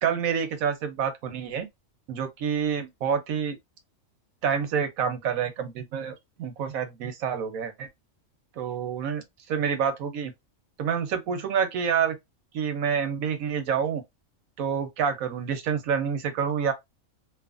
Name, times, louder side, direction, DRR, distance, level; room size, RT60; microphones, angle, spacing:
voice 1, 0.0-1.7 2.1-3.6 4.4-7.9 8.6-10.3 10.8-12.2 12.5-14.0 14.6-16.7, right 7 dB, 85° right, 1.2 m, -28 dB
2.8 x 2.4 x 2.4 m
omnidirectional pair, 1.4 m